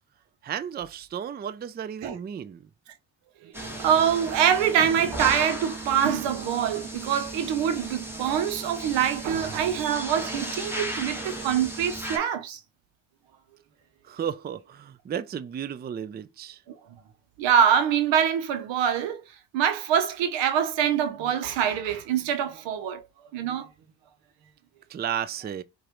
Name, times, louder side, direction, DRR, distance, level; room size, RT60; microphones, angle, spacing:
voice 1, 0.4-2.6 14.1-16.6 24.9-25.6, right 8 dB, 25° right, 0.4 m, -33 dB
voice 2, 3.4-12.6 17.4-19.2 19.5-23.0 23.3-23.7, right 8 dB, 85° right, 0.8 m, -24 dB
sound 1, 3.5-12.2, right 1 dB, 5° right, 1.5 m, -35 dB
4.9 x 2.5 x 3.0 m
supercardioid pair, 60°, 44 cm